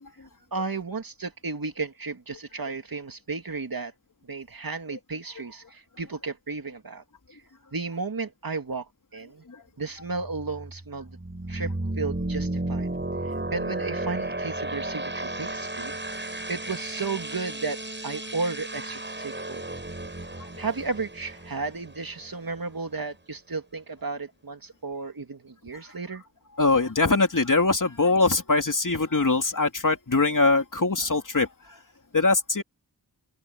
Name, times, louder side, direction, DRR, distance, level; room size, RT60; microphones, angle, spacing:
voice 1, 0.5-3.9 4.3-7.0 7.3-7.4 7.7-9.4 9.8-11.2 11.5-12.9 13.2-19.7 20.6-26.2, right 4 dB, 60° right, 2.7 m, -34 dB
sound 1, 10.1-22.7, right 2 dB, 30° right, 7.4 m, -34 dB
voice 2, 26.6-31.5 32.1-32.6, left 3 dB, 50° left, 3.2 m, -22 dB
open air
wide cardioid pair, 65°, 39 cm